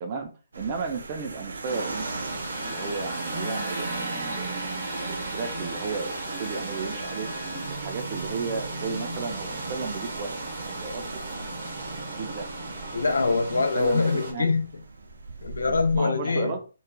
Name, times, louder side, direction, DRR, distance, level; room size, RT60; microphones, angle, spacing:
voice 1, 0.0-2.1 2.6-4.8 5.3-7.3 7.7-10.4 10.7-11.0 12.2-12.4 13.5-14.5 15.9-16.6, right 4 dB, 30° right, 0.5 m, -33 dB
sound 1, 0.5-16.0, right 3 dB, 80° right, 0.5 m, -42 dB
sound 2, 1.6-14.3, right 2 dB, 60° right, 1.1 m, -34 dB
Trumpet, 2.5-7.7, left 1 dB, 20° left, 0.8 m, -44 dB
voice 2, 12.9-14.7 15.4-16.5, left 4 dB, 90° left, 0.5 m, -24 dB
3.1 x 2.3 x 2.2 m
hypercardioid pair, 160°, 0 cm